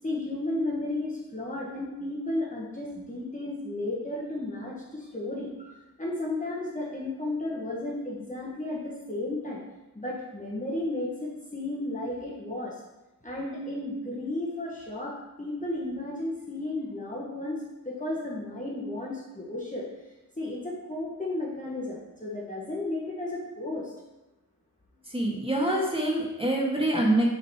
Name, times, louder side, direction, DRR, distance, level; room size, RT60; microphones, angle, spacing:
voice 1, 0.0-9.6 9.9-12.7 13.2-17.6 17.8-19.9 20.4-23.9, left 2 dB, 20° left, -5 dB, 1.4 m, -33 dB
voice 2, 25.1-27.3, right 1 dB, 15° right, -3 dB, 1.9 m, -25 dB
7.0 x 4.0 x 4.4 m, 0.99 s
cardioid pair, 40°, 38 cm